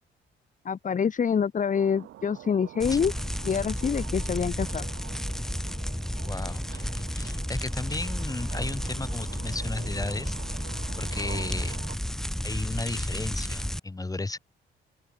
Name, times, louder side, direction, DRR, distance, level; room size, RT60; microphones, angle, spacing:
voice 1, 0.6-3.1 3.4-4.9, left 6 dB, 40° left, 1.6 m, -26 dB
sound 1, 1.7-12.0, right 13 dB, 80° right, 5.7 m, -46 dB
sound 2, 2.8-13.8, equal, ahead, 1.6 m, -32 dB
voice 2, 6.3-10.6 11.0-11.8 12.4-14.4, left 2 dB, 20° left, 4.8 m, -34 dB
open air
cardioid pair, 90°, 20 cm